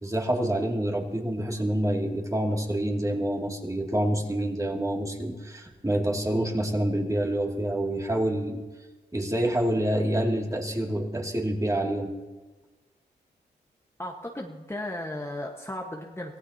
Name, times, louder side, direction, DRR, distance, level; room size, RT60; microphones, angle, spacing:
voice 1, 0.0-8.6 9.1-12.1, right 1 dB, 20° right, 0 dB, 2.6 m, -27 dB
voice 2, 14.0-16.4, left 1 dB, 15° left, 0 dB, 1.4 m, -35 dB
25.0 x 16.5 x 2.9 m, 1.2 s
cardioid pair, 60°, 18 cm